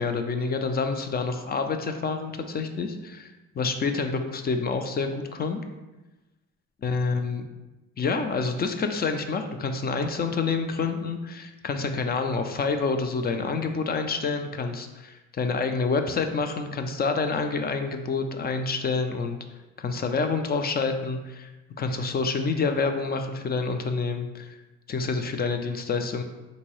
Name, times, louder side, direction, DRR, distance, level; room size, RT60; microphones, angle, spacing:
voice 1, 0.0-3.3 3.6-5.6 6.8-7.4 8.0-19.4 19.8-21.5 21.8-24.6 24.9-26.2, left 4 dB, 35° left, 7 dB, 0.4 m, -28 dB
3.7 x 2.7 x 3.0 m, 1.1 s
cardioid pair, 90°, 30 cm